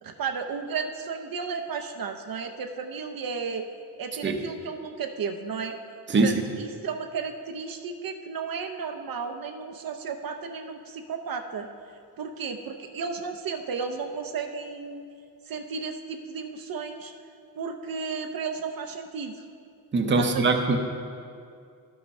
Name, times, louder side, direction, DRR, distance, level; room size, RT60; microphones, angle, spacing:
voice 1, 0.0-3.7 4.0-5.8 6.2-11.7 12.2-15.0 15.5-17.1 17.6-19.4 20.2-20.4, right 5 dB, 65° right, 5 dB, 0.6 m, -33 dB
voice 2, 19.9-20.8, right 3 dB, 30° right, 4 dB, 0.7 m, -22 dB
12.0 x 5.5 x 5.3 m, 2.3 s
wide cardioid pair, 150°, 37 cm